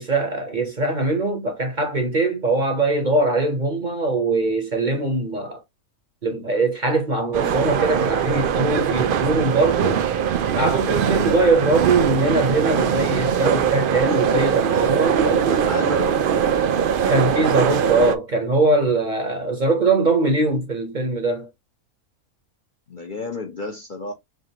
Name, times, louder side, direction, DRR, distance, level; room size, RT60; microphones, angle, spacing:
voice 1, 0.0-5.6 6.2-10.1 10.5-15.2 17.1-21.5, right 2 dB, 35° right, 0.9 m, -21 dB
sound 1, 7.3-18.2, right 8 dB, 75° right, 0.5 m, -21 dB
voice 2, 15.2-16.2 22.9-24.1, left 3 dB, 40° left, 0.8 m, -30 dB
5.0 x 2.5 x 2.8 m
omnidirectional pair, 1.5 m